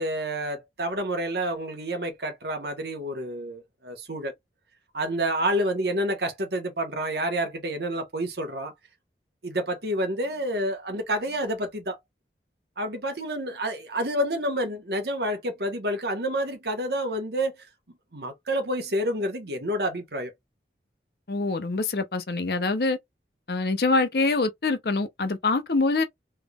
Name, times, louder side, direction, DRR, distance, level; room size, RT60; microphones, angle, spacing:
voice 1, 0.0-4.3 4.9-8.7 9.4-12.0 12.8-17.5 18.1-20.3, right 1 dB, 65° right, 1.2 m, -29 dB
voice 2, 21.3-23.0 23.5-26.0, left 3 dB, 60° left, 0.7 m, -25 dB
3.5 x 3.2 x 2.3 m
head